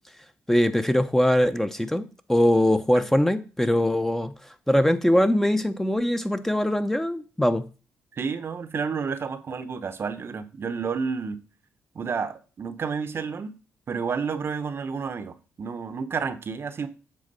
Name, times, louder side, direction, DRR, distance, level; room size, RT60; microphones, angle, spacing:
voice 1, 0.5-2.0 2.3-4.3 4.7-7.7, left 1 dB, 5° left, 0.6 m, -22 dB
voice 2, 8.1-11.4 11.9-13.5 13.9-16.9, right 5 dB, 50° right, 0.7 m, -30 dB
7.7 x 3.5 x 5.4 m
supercardioid pair, 65°, 5 cm